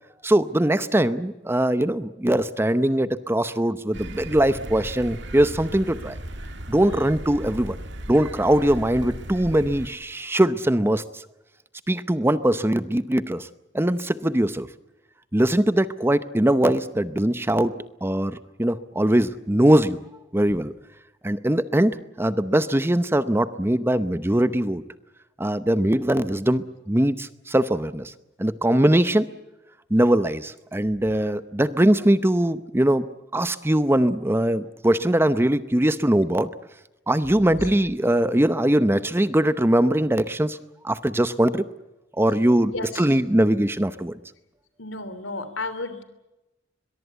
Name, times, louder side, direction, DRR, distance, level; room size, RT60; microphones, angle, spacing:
voice 1, 0.2-6.2 6.7-7.8 8.1-11.2 11.9-13.5 13.7-14.7 15.3-17.7 18.0-20.0 20.3-20.7 21.2-24.8 25.4-28.1 28.4-29.3 29.9-33.1 33.3-36.5 37.1-40.6 40.8-41.6 42.2-44.1, right 1 dB, 10° right, 13 dB, 0.7 m, -21 dB
sound 1, 3.9-9.9, right 1 dB, 65° right, 2.2 m, -36 dB
voice 2, 42.7-43.0 44.8-46.0, left 2 dB, 85° left, 12 dB, 3.2 m, -32 dB
22.5 x 22.0 x 8.2 m, 0.99 s
head